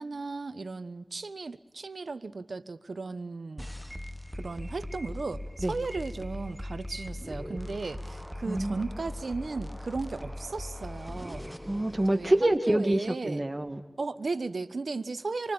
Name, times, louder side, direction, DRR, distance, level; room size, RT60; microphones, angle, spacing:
voice 1, 0.0-3.7 4.3-11.5 12.1-12.4 12.7-13.5 14.0-15.5, right 3 dB, 85° right, 13 dB, 1.3 m, -36 dB
sound 1, 3.6-12.6, left 1 dB, 5° right, 1.7 m, -40 dB
voice 2, 11.7-13.8, right 1 dB, 25° right, 6 dB, 2.2 m, -26 dB
26.5 x 25.0 x 8.9 m, 1.0 s
wide cardioid pair, 55°, 0 cm